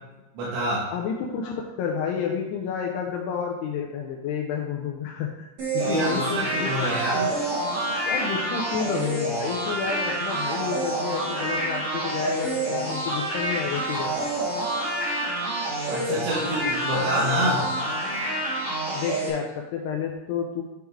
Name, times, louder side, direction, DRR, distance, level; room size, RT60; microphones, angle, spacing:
voice 1, 0.4-0.8 5.8-7.3 15.9-17.7, right 1 dB, 75° right, -7 dB, 3.5 m, -26 dB
voice 2, 0.9-5.5 5.9-6.7 7.1-7.2 8.1-14.3 19.0-20.6, left 7 dB, 85° left, 1 dB, 2.4 m, -30 dB
sound 1, 5.6-19.3, right 1 dB, 40° right, 2.6 m, -28 dB
10.5 x 3.7 x 4.5 m, 1.1 s
omnidirectional pair, 5.4 m